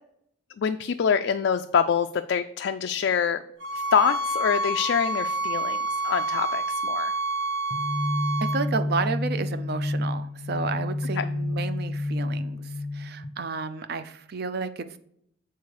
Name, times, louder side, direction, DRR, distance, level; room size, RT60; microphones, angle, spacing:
voice 1, 0.6-3.4 3.7-7.1 11.2-11.3, left 7 dB, 60° left, 7 dB, 0.3 m, -25 dB
sound 1, 3.6-8.6, right 2 dB, 70° right, 1.0 m, -28 dB
sound 2, 7.7-13.2, left 1 dB, 20° left, 0.6 m, -29 dB
voice 2, 8.4-15.0, right 4 dB, 50° right, 11 dB, 0.5 m, -32 dB
6.8 x 4.4 x 4.8 m, 0.70 s
head